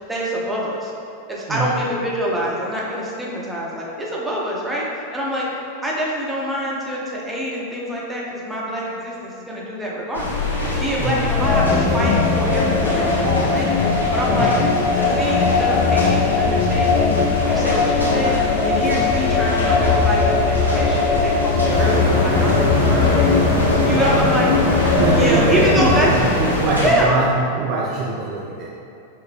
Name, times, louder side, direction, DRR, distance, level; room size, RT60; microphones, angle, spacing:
voice 1, 0.1-0.9 1.3-4.9 5.1-5.5 5.8-10.4 10.8-14.5 14.9-17.1 17.4-18.4 18.6-23.4 23.9-24.5 25.1-26.1 26.8-27.1, equal, 10° right, -5 dB, 0.8 m, -25 dB
voice 2, 1.5-1.9 11.0-11.3 14.3-14.7 23.8-24.2 24.9-28.7, right 3 dB, 40° right, -4 dB, 0.4 m, -23 dB
sound 1, 10.1-27.0, left 2 dB, 90° right, 0.9 m, -25 dB
sound 2, 11.4-26.0, left 4 dB, 35° left, 0.3 m, -20 dB
sound 3, 21.7-26.9, left 2 dB, 70° left, 0.7 m, -22 dB
5.7 x 2.1 x 3.3 m, 2.8 s
figure-of-eight pair, 90°, 0 cm